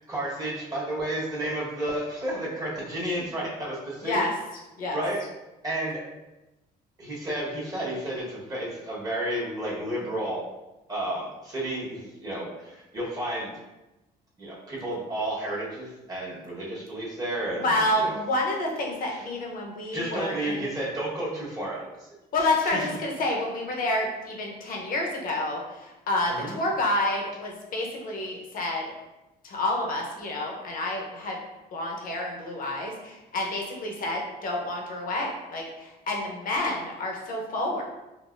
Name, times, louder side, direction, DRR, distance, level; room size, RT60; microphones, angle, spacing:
voice 1, 0.0-4.2 4.9-5.2 5.6-6.0 7.0-10.4 10.9-13.5 14.4-18.2 19.0-19.2 19.9-22.1 22.4-22.9 26.3-26.6, right 1 dB, 20° right, -5 dB, 1.3 m, -32 dB
voice 2, 17.6-20.7 22.3-28.9 29.4-31.4 31.7-37.8, left 1 dB, 55° left, 0 dB, 0.9 m, -29 dB
4.0 x 2.7 x 2.5 m, 1.0 s
cardioid pair, 110°, 17 cm